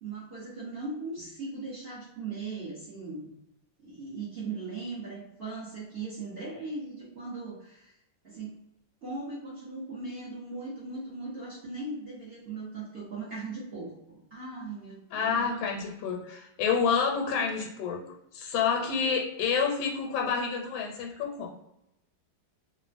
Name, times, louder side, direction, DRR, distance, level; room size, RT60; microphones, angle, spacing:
voice 1, 0.0-3.3 3.8-7.9 8.2-8.5 9.0-15.6, right 3 dB, 50° right, -8 dB, 0.7 m, -39 dB
voice 2, 15.1-18.0 18.3-21.6, left 6 dB, 90° left, 2 dB, 1.3 m, -28 dB
3.2 x 2.1 x 2.4 m, 0.84 s
omnidirectional pair, 2.0 m